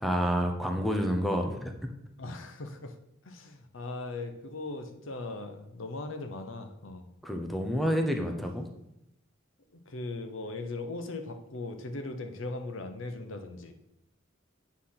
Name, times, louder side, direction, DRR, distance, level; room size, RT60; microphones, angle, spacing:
voice 1, 0.0-1.9 7.2-8.7, equal, ahead, 3 dB, 0.8 m, -29 dB
voice 2, 2.2-2.9 3.2-7.0 9.9-13.7, left 2 dB, 75° left, 6 dB, 0.8 m, -39 dB
8.5 x 4.1 x 5.7 m, 0.83 s
head